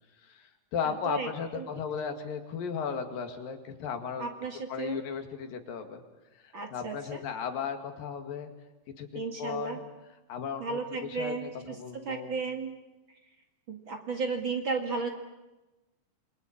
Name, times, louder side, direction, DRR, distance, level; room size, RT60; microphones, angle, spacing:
voice 1, 0.2-4.3 4.7-6.0 6.4-8.5 9.0-9.8 10.3-12.4, left 6 dB, 85° left, 6 dB, 3.9 m, -36 dB
voice 2, 0.8-1.3 1.5-1.6 4.2-5.0 6.5-7.2 9.1-9.8 10.6-12.7 13.7-15.1, right 4 dB, 40° right, 4 dB, 2.4 m, -34 dB
28.0 x 22.5 x 8.6 m, 1.1 s
omnidirectional pair, 3.9 m